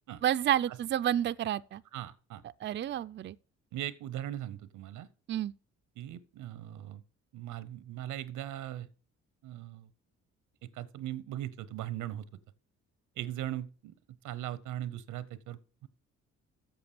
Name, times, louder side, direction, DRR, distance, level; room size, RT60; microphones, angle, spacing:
voice 1, 0.2-1.8 2.6-3.4 5.3-5.5, right 11 dB, 40° right, 0.4 m, -30 dB
voice 2, 1.9-2.4 3.7-5.1 6.0-7.0 7.3-8.9 9.4-9.9 10.6-12.3 13.2-14.0 14.2-15.9, right 12 dB, 90° right, 0.8 m, -39 dB
7.9 x 6.8 x 6.7 m
cardioid pair, 90°, 30 cm